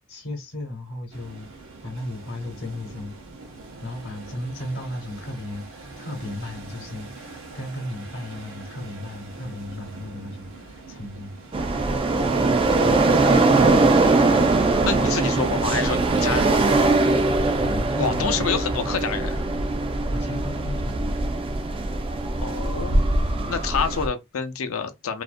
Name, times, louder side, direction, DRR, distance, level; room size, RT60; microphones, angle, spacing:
voice 1, 0.1-1.5 1.8-3.2 3.8-11.6 17.6-18.8 20.1-21.2 23.2-23.6, left 1 dB, 55° left, 0.9 m, -35 dB
sound 1, 1.1-16.2, right 3 dB, 70° right, 0.8 m, -43 dB
sound 2, 11.5-24.1, right 3 dB, 25° right, 0.3 m, -21 dB
voice 2, 13.3-16.9 18.0-19.4 22.4-23.0 23.5-25.2, left 5 dB, 75° left, 0.5 m, -28 dB
2.5 x 2.1 x 2.4 m
head